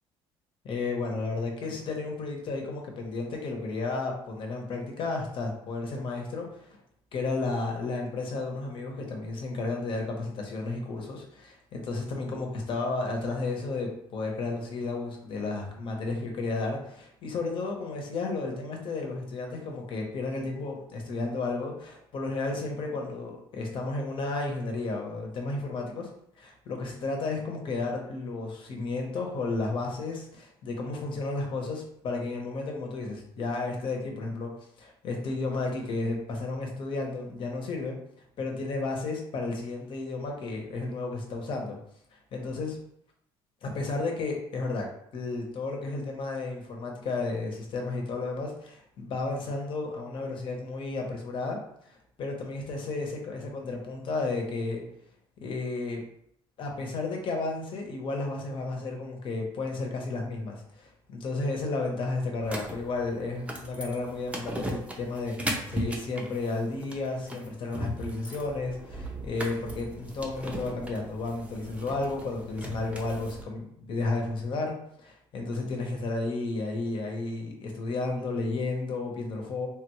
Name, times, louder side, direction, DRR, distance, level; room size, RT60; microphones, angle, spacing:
voice 1, 0.6-6.8 7.1-26.1 26.4-34.5 34.8-37.9 38.4-41.8 42.3-42.8 43.6-44.9 45.1-54.8 55.4-56.0 56.6-79.7, left 3 dB, 55° left, 1 dB, 0.9 m, -33 dB
sound 1, 62.4-73.4, right 1 dB, 10° right, 0.6 m, -38 dB
3.5 x 2.3 x 3.0 m, 0.71 s
cardioid pair, 100°, 11 cm